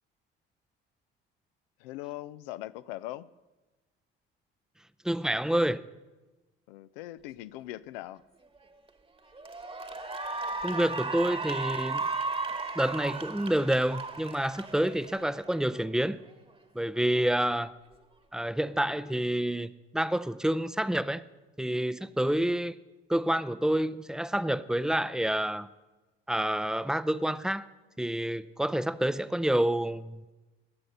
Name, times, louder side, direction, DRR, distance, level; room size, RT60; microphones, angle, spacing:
voice 1, 1.8-3.3 6.7-8.2 17.2-17.3, left 15 dB, 75° left, 0.5 m, -41 dB
voice 2, 5.0-5.8 10.6-12.0 12.8-16.2 16.7-17.7 18.3-21.2 21.6-22.8 23.1-25.7 26.3-27.7 28.0-30.3, right 1 dB, ahead, 0.5 m, -28 dB
Cheering / Applause, 8.6-8.9 9.3-15.9, right 3 dB, 20° right, 1.2 m, -35 dB
19.5 x 7.7 x 5.4 m
hypercardioid pair, 55°, 29 cm